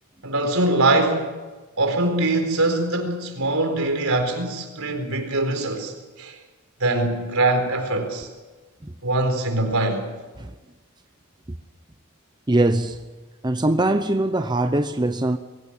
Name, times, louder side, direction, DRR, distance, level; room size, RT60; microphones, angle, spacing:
voice 1, 0.2-1.3 1.8-6.4 6.8-8.3 9.0-10.0, right 2 dB, 75° right, 4.3 m, -22 dB
voice 2, 12.5-13.1 13.4-15.4, right 1 dB, 20° right, 0.8 m, -22 dB
23.5 x 17.0 x 9.0 m
head